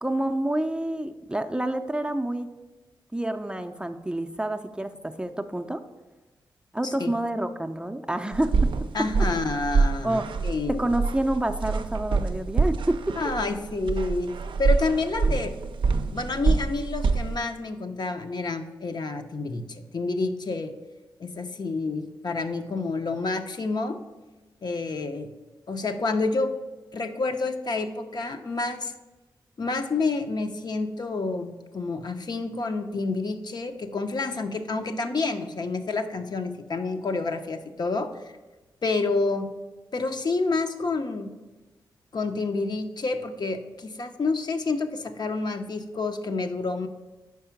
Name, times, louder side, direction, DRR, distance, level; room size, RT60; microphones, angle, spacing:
voice 1, 0.0-2.5 3.1-5.8 6.7-8.7 9.0-9.1 10.0-10.3 10.7-13.2, right 1 dB, 10° right, 6 dB, 0.4 m, -28 dB
voice 2, 6.8-7.2 8.9-10.9 13.2-14.3 14.6-15.5 16.1-20.7 21.2-24.0 24.6-25.3 25.7-26.5 26.9-28.9 29.6-38.1 38.8-39.5 39.9-41.3 42.1-46.9, left 3 dB, 55° left, 6 dB, 0.6 m, -29 dB
sound 1, 8.3-17.4, right 4 dB, 70° right, 0.4 m, -26 dB
4.9 x 4.7 x 5.8 m, 1.2 s
cardioid pair, 50°, 9 cm